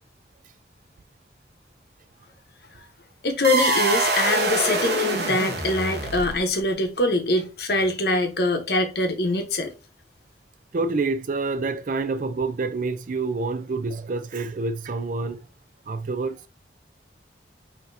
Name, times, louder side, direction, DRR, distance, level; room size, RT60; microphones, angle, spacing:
voice 1, 3.2-9.7, left 2 dB, 60° left, 0.9 m, -23 dB
sound 1, 3.4-6.6, right 2 dB, 60° right, 1.1 m, -24 dB
voice 2, 10.7-15.5 15.9-16.4, right 3 dB, 45° right, 0.4 m, -27 dB
5.8 x 2.8 x 2.6 m
head